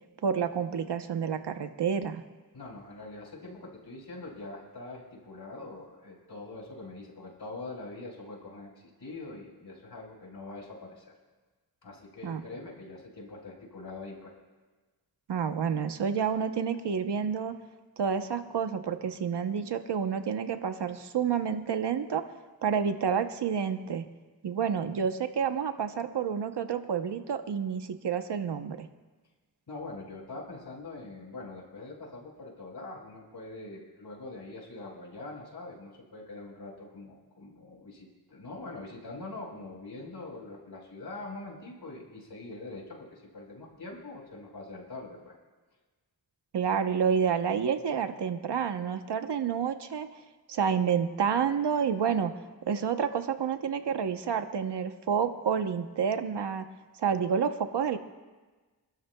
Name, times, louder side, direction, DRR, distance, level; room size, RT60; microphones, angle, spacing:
voice 1, 0.2-2.2 12.2-12.4 15.3-17.6 18.0-22.2 22.6-24.1 24.4-28.9 46.5-50.1 50.5-52.4 52.7-56.6 57.0-58.0, right 7 dB, 85° right, 8 dB, 1.0 m, -29 dB
voice 2, 2.5-8.7 9.0-11.1 11.8-14.3 29.7-45.3, left 2 dB, 75° left, -2 dB, 4.6 m, -43 dB
26.5 x 12.5 x 2.3 m, 1.3 s
cardioid pair, 45°, 40 cm